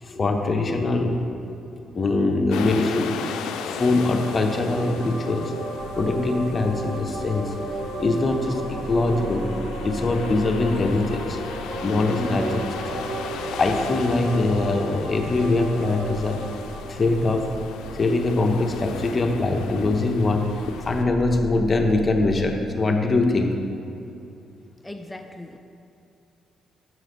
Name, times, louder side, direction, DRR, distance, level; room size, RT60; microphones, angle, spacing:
voice 1, 0.0-3.2 3.6-5.6 5.9-7.6 7.8-11.4 11.8-13.1 13.5-16.4 16.9-17.5 17.9-20.5 20.8-23.6, left 2 dB, 35° left, 3 dB, 0.9 m, -23 dB
sound 1, 2.5-21.0, left 7 dB, 90° left, 0.4 m, -37 dB
sound 2, 3.6-18.3, right 2 dB, 65° right, 1.0 m, -35 dB
sound 3, 5.8-22.5, left 1 dB, 45° right, 1.6 m, -40 dB
voice 2, 24.8-25.6, left 1 dB, 15° left, 5 dB, 0.4 m, -38 dB
7.9 x 4.9 x 6.2 m, 2.7 s
cardioid pair, 90°, 0 cm